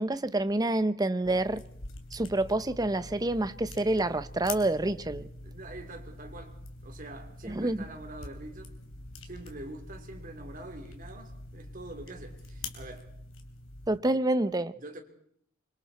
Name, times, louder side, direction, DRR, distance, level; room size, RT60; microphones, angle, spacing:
voice 1, 0.0-1.6 2.1-5.3 7.4-7.8 13.9-14.7, right 2 dB, 20° right, 0.8 m, -28 dB
sound 1, 1.2-14.0, left 2 dB, 80° left, 3.1 m, -45 dB
voice 2, 5.4-8.8 9.2-13.2 14.7-15.0, right 2 dB, 40° right, 3.4 m, -45 dB
26.5 x 24.5 x 4.3 m
head